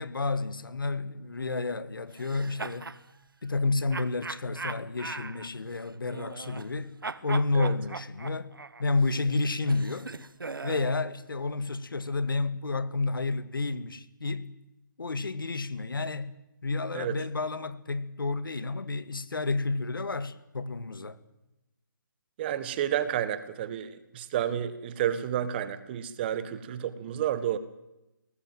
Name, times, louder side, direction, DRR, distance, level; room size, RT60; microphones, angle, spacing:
voice 1, 0.0-2.9 3.4-8.5 8.8-10.1 10.6-14.5 15.0-16.4 16.6-21.2, left 3 dB, 80° left, 2.2 m, -30 dB
sound 1, 2.1-3.0 3.9-6.8 7.0-11.0, right 3 dB, 90° right, 1.4 m, -40 dB
voice 2, 22.4-27.6, right 10 dB, 30° right, 1.7 m, -30 dB
23.0 x 19.0 x 7.7 m
hypercardioid pair, 155°, 11 cm